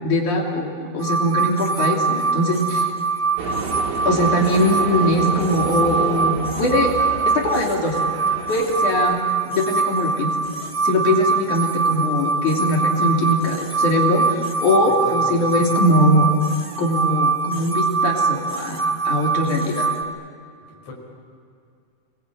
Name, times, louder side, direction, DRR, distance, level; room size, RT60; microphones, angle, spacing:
voice 1, 0.0-2.9 4.1-7.0 7.3-8.0 8.5-9.2 9.5-10.3 10.8-16.3 16.8-19.9, left 1 dB, 80° left, 0 dB, 4.5 m, -21 dB
sound 1, 1.0-20.0, right 5 dB, 25° right, 1.8 m, -23 dB
sound 2, 3.4-9.1, right 6 dB, 80° right, 3.4 m, -30 dB
voice 2, 14.9-15.4 20.7-20.9, left 3 dB, 60° left, -1 dB, 6.5 m, -38 dB
28.5 x 21.5 x 8.9 m, 2.3 s
omnidirectional pair, 3.5 m